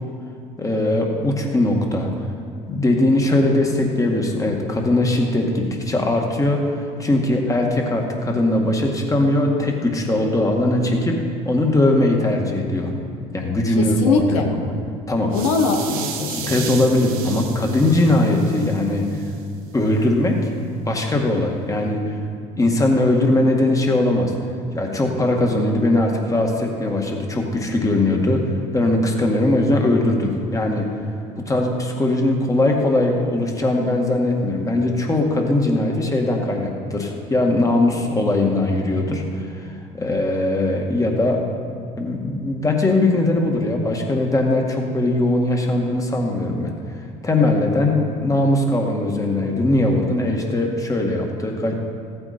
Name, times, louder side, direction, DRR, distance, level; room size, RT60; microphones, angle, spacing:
voice 1, 0.6-2.1 2.7-11.2 11.4-12.9 13.3-14.7 15.1-15.3 16.3-19.1 19.7-20.5 20.8-22.2 22.6-24.3 24.7-30.9 31.4-41.6 42.0-46.7 47.2-51.9, left 1 dB, 20° left, 1 dB, 2.0 m, -20 dB
voice 2, 13.7-14.5 15.3-16.6, left 4 dB, 85° left, 3 dB, 1.0 m, -21 dB
sound 1, 15.3-19.4, right 8 dB, 65° right, 1.2 m, -34 dB
15.0 x 8.9 x 4.4 m, 2.4 s
supercardioid pair, 75°, 16 cm